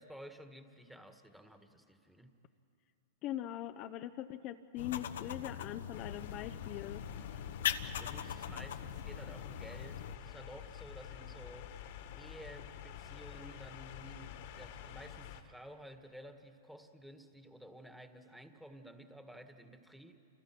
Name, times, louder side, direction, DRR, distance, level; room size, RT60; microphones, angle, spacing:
voice 1, 0.0-2.4 7.8-11.8 12.1-20.2, equal, ahead, 6 dB, 1.8 m, -53 dB
voice 2, 3.2-7.0, left 12 dB, 40° left, 7 dB, 0.8 m, -41 dB
sound 1, 4.8-10.2, left 9 dB, 75° left, 1.2 m, -41 dB
sound 2, 5.9-15.4, left 9 dB, 60° left, 2.0 m, -49 dB
29.0 x 28.5 x 6.1 m, 2.7 s
hypercardioid pair, 125°, 0 cm